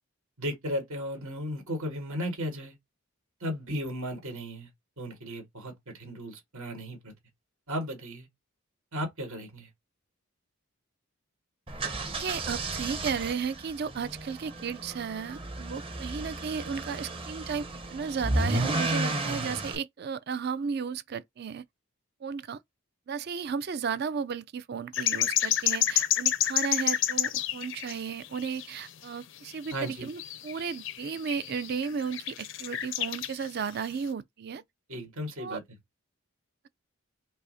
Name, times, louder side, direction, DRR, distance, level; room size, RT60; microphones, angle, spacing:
voice 1, 0.4-2.7 3.4-4.7 5.0-7.1 7.7-8.3 8.9-9.7 29.7-30.1 34.9-35.6, equal, 75° right, 2.0 m, -35 dB
sound 1, 11.7-19.8, right 2 dB, 25° right, 0.7 m, -33 dB
voice 2, 12.2-21.6 22.2-22.6 23.1-34.6 35.4-35.6, right 6 dB, 50° right, 0.4 m, -34 dB
sound 2, 24.9-28.0 28.2-29.0 29.4-33.5 33.8-33.9, left 11 dB, 60° left, 0.5 m, -29 dB
5.4 x 2.1 x 3.9 m
head